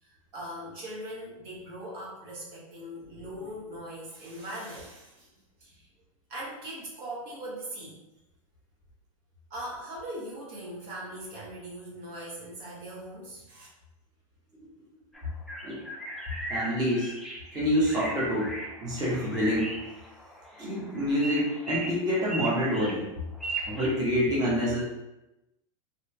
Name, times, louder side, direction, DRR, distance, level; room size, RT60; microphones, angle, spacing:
voice 1, 0.0-5.3 5.6-5.9 6.3-8.0 9.5-13.7, right 1 dB, 55° right, -5 dB, 1.1 m, -40 dB
sound 1, 15.1-23.9, right 2 dB, ahead, 0.5 m, -38 dB
voice 2, 16.5-17.1 17.5-18.5 18.8-19.7 20.6-23.1 23.7-24.8, equal, 20° right, -6 dB, 1.0 m, -27 dB
3.0 x 2.6 x 2.2 m, 0.94 s
hypercardioid pair, 95°, 18 cm